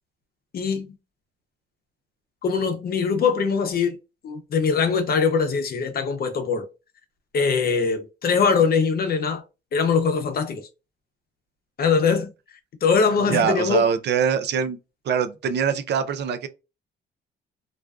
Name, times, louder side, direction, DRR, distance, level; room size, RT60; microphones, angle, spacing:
voice 1, 0.5-0.9 2.4-4.0 4.2-6.7 7.3-9.4 9.7-10.6 11.8-12.3 12.8-13.8, left 5 dB, 50° left, 0.7 m, -22 dB
voice 2, 13.3-14.8 15.0-16.5, right 7 dB, 60° right, 0.5 m, -23 dB
2.4 x 2.2 x 2.3 m
cardioid pair, 90°, 20 cm